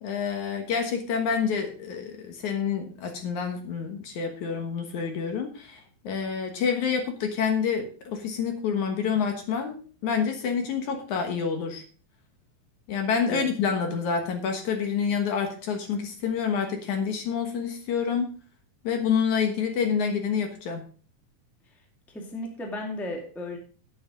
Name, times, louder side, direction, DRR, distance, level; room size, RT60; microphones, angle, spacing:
voice 1, 0.0-11.8 12.9-18.3 18.8-20.9, left 6 dB, 65° left, 5 dB, 2.6 m, -28 dB
voice 2, 22.1-23.6, left 2 dB, ahead, 1 dB, 1.6 m, -35 dB
10.0 x 9.1 x 5.1 m, 0.39 s
omnidirectional pair, 4.0 m